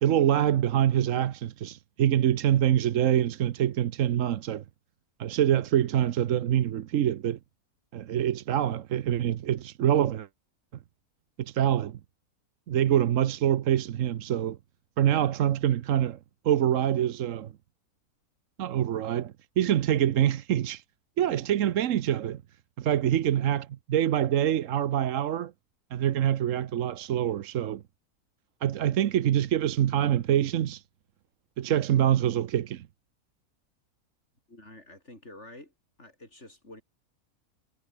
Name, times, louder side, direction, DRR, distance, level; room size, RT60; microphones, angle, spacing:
voice 1, 0.0-4.6 5.2-7.4 7.9-10.3 11.4-12.0 12.7-14.6 15.0-16.2 16.4-17.5 18.6-20.8 21.2-22.4 22.8-25.5 25.9-27.8 28.6-30.8 31.6-32.9, right 11 dB, 60° right, 1.1 m, -25 dB
voice 2, 34.5-35.7 36.0-36.8, left 2 dB, 45° left, 7.2 m, -48 dB
omnidirectional pair, 1.6 m